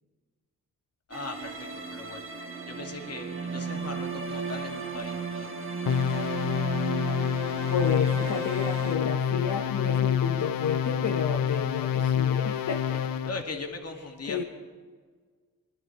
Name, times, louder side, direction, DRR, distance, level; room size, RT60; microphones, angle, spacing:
voice 1, 1.1-2.2 2.7-5.5 13.2-14.4, left 3 dB, 45° left, 2 dB, 2.4 m, -39 dB
sound 1, 1.1-8.9, right 5 dB, 40° right, 1.9 m, -35 dB
sound 2, 5.9-13.4, left 8 dB, 80° left, 0.8 m, -27 dB
voice 2, 7.7-13.0 14.3-14.4, left 6 dB, 65° left, 3 dB, 1.2 m, -31 dB
21.5 x 12.0 x 4.7 m, 1.5 s
cardioid pair, 65°, 34 cm